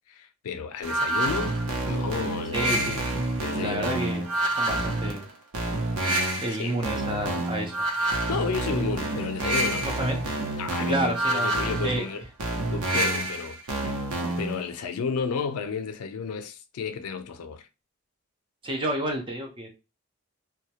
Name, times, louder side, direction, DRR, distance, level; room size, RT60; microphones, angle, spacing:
voice 1, 0.1-1.5 1.9-2.9 3.4-4.0 6.6-6.8 8.3-9.9 10.6-12.2 12.7-14.0 14.4-17.7, left 5 dB, 90° left, 0.4 m, -32 dB
sound 1, 0.8-14.6, right 1 dB, 85° right, 0.6 m, -28 dB
voice 2, 2.5-3.0 3.6-4.2 4.6-5.3 6.4-7.8 9.8-10.2 10.9-11.5 11.8-12.1 18.6-19.7, right 1 dB, 25° right, 0.5 m, -29 dB
2.2 x 2.0 x 2.8 m
head